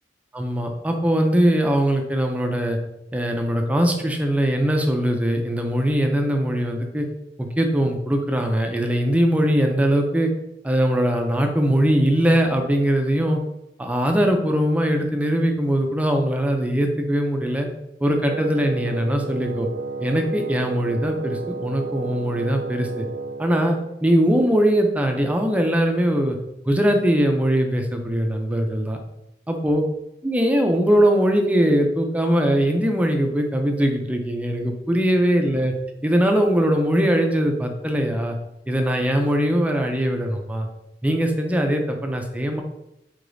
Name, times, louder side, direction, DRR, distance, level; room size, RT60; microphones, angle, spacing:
voice 1, 0.3-2.8 3.1-7.1 7.4-10.3 10.6-13.4 13.8-17.7 18.0-19.7 20.0-23.1 23.4-26.4 26.7-29.0 29.5-29.8 30.2-35.7 36.0-38.4 38.7-40.7 41.0-42.6, equal, 10° right, 3 dB, 0.4 m, -21 dB
Wind instrument woodwind instrument, 18.2-23.9, right 4 dB, 90° right, 0.4 m, -32 dB
4.9 x 3.8 x 2.6 m, 0.85 s
head